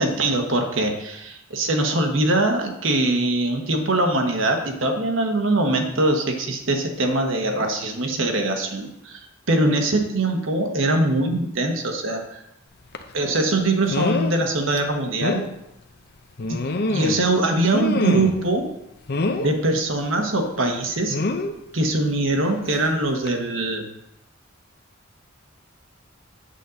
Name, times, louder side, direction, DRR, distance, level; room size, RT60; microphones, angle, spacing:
voice 1, 0.0-12.4 13.1-15.4 16.5-16.6 16.9-18.7 19.4-21.2 21.7-23.9, right 2 dB, 70° right, 3 dB, 1.2 m, -22 dB
sound 1, 12.9-13.1 13.9-14.4 14.8-14.9 15.2-15.5 16.4-17.3 17.7-18.5 19.1-19.5 21.1-21.5 22.7-22.9 23.3-23.4, left 2 dB, 55° left, 0.7 m, -25 dB
8.3 x 3.9 x 7.0 m, 0.85 s
head